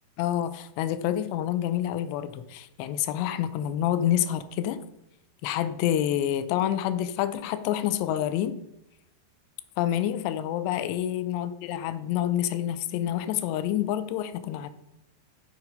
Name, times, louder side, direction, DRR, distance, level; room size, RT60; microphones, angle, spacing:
voice 1, 0.2-4.8 5.4-8.6 9.8-14.7, left 11 dB, 80° left, 12 dB, 2.6 m, -28 dB
12.5 x 4.7 x 5.3 m, 0.82 s
omnidirectional pair, 5.3 m